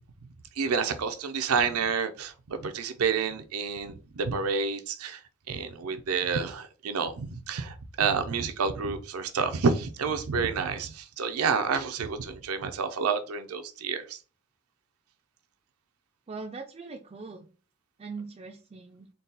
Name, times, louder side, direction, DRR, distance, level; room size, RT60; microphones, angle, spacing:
voice 1, 0.6-5.2 5.5-14.2, right 5 dB, 90° right, 0.5 m, -29 dB
voice 2, 16.3-17.5 18.0-19.1, right 4 dB, 30° right, 0.3 m, -41 dB
3.9 x 2.3 x 3.9 m
head